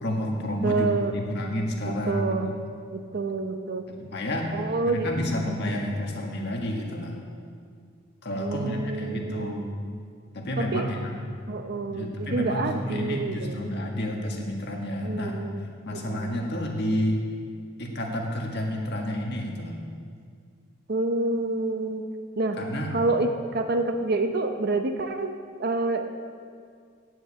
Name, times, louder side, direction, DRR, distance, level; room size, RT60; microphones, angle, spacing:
voice 1, 0.0-2.5 3.9-4.5 4.8-7.2 8.2-9.7 10.3-11.2 11.8-15.4 15.8-17.2 17.8-19.8 22.6-22.9, left 1 dB, 55° left, 0 dB, 1.7 m, -30 dB
voice 2, 0.6-1.1 1.8-2.5 2.9-3.8 4.5-5.6 8.4-9.6 10.7-10.9 11.5-13.6 15.0-15.6 15.9-16.4 20.9-22.0 22.4-22.6 22.9-25.3 25.6-26.1, right 3 dB, 50° right, 6 dB, 0.7 m, -28 dB
9.3 x 8.0 x 8.6 m, 2.2 s
head